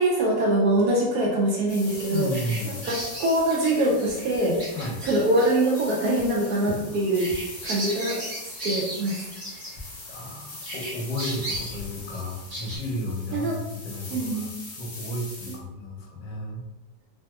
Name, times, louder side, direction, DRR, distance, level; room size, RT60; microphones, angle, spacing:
voice 1, 0.0-2.3 2.6-4.6 5.0-7.3 7.6-9.3 13.3-13.6 14.1-14.5 15.5-15.6, right 1 dB, 75° right, -2 dB, 0.9 m, -24 dB
sound 1, 1.7-15.6, left 2 dB, 50° left, 1.0 m, -42 dB
Bird vocalization bird call bird song, 1.9-10.3 10.6-12.8, right 1 dB, 30° right, 0.9 m, -36 dB
voice 2, 2.1-2.8 4.7-5.0 10.1-14.5 14.8-16.6, left 1 dB, 70° left, 0 dB, 1.2 m, -33 dB
3.2 x 2.8 x 2.2 m, 1.0 s
omnidirectional pair, 2.1 m